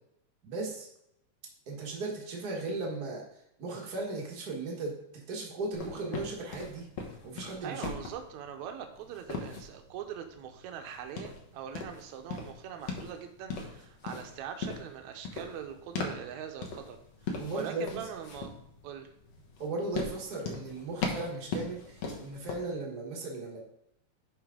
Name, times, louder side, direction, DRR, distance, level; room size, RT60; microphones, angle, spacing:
voice 1, 0.4-0.9 1.7-3.2 3.6-6.9 7.2-7.9 17.4-18.0 19.6-23.6, right 3 dB, 60° right, -1 dB, 1.0 m, -36 dB
sound 1, 5.7-22.5, left 4 dB, 60° left, 1.9 m, -40 dB
voice 2, 7.6-17.0 17.5-18.5 18.8-19.1, right 8 dB, 80° right, 6 dB, 1.7 m, -42 dB
10.5 x 4.8 x 3.7 m, 0.76 s
omnidirectional pair, 4.0 m